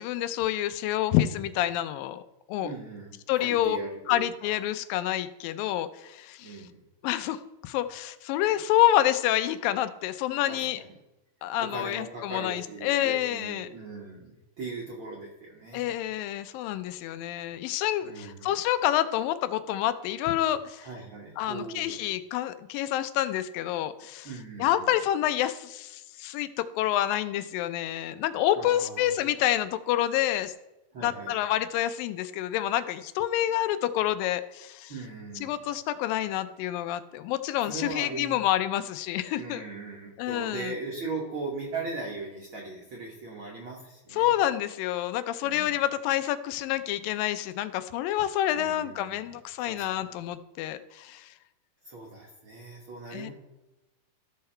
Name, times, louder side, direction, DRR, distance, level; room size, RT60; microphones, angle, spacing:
voice 1, 0.0-2.2 2.5-2.7 3.3-3.8 4.1-6.6 7.0-10.8 11.4-13.7 15.7-20.9 21.4-24.3 24.6-30.5 31.0-34.9 35.4-39.6 40.2-40.7 44.2-51.3 53.1-53.3, left 13 dB, 85° left, 12 dB, 2.3 m, -28 dB
voice 2, 2.6-4.8 6.4-6.8 10.5-10.9 11.6-15.9 18.0-18.6 20.8-22.0 24.2-24.9 28.5-29.1 30.9-31.4 34.9-35.6 37.6-38.4 39.3-44.3 45.4-45.7 48.5-49.3 49.6-50.2 51.8-53.3, right 3 dB, 60° right, -2 dB, 1.4 m, -39 dB
13.5 x 5.8 x 4.3 m, 0.99 s
omnidirectional pair, 4.0 m